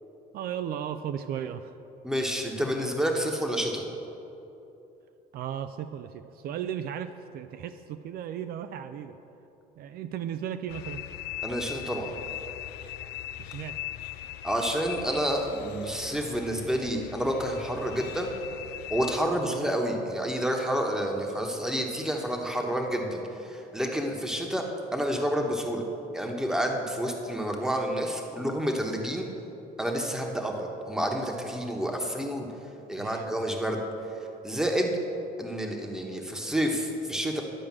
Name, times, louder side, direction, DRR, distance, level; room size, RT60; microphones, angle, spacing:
voice 1, 0.3-1.8 5.3-9.2 9.8-11.0 13.4-13.8 19.4-19.7 33.0-33.5, right 9 dB, 65° right, 10 dB, 0.4 m, -36 dB
voice 2, 2.0-3.8 11.4-12.1 14.4-18.3 18.9-25.8 26.1-29.3 29.8-32.5 32.9-33.8 34.4-34.9 35.4-37.4, equal, 5° right, 1 dB, 1.1 m, -29 dB
sound 1, 10.7-19.2, left 13 dB, 80° left, 0.4 m, -40 dB
11.0 x 4.9 x 7.3 m, 2.9 s
cardioid pair, 110°, 17 cm